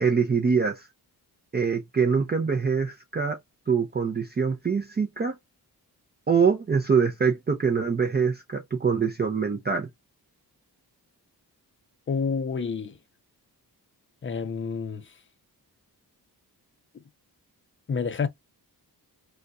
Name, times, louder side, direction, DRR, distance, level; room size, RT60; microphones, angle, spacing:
voice 1, 0.0-0.9 1.5-3.4 3.7-5.4 6.3-9.9, right 5 dB, 25° right, 0.5 m, -24 dB
voice 2, 12.1-13.0 14.2-15.1 17.9-18.3, left 5 dB, 30° left, 0.5 m, -28 dB
3.9 x 2.2 x 2.3 m
wide cardioid pair, 130°, 39 cm